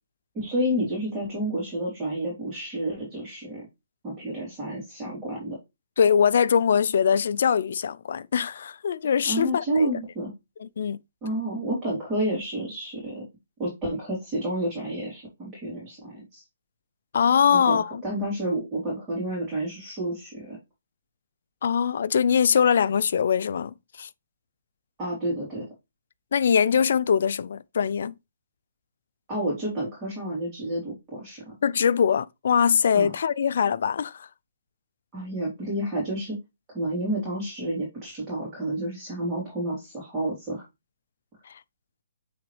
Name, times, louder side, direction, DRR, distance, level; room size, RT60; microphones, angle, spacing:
voice 1, 0.3-3.7 4.0-5.6 9.2-10.3 11.2-13.2 13.6-16.4 17.5-20.6 25.0-25.6 29.3-31.5 32.9-33.1 35.1-36.4 36.7-40.6, right 1 dB, 20° right, 3.3 m, -30 dB
voice 2, 6.0-9.9 10.6-11.0 17.1-18.0 21.6-24.1 26.3-28.1 31.6-34.3, left 7 dB, 60° left, 0.4 m, -22 dB
9.1 x 4.0 x 3.3 m
hypercardioid pair, 155°, 0 cm